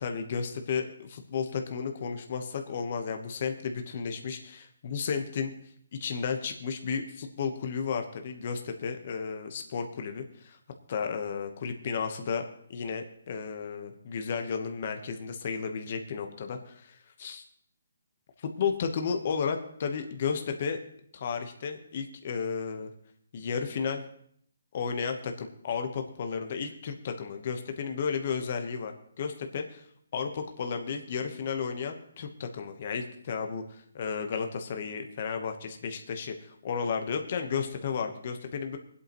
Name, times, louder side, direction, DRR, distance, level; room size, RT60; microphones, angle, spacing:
voice 1, 0.0-5.5 6.0-10.6 10.9-12.4 12.7-17.4 18.4-20.8 21.1-22.9 23.3-24.0 24.7-29.8 30.1-38.8, left 6 dB, 40° left, 5 dB, 1.0 m, -33 dB
25.5 x 8.4 x 3.0 m, 0.65 s
hypercardioid pair, 170°, 0 cm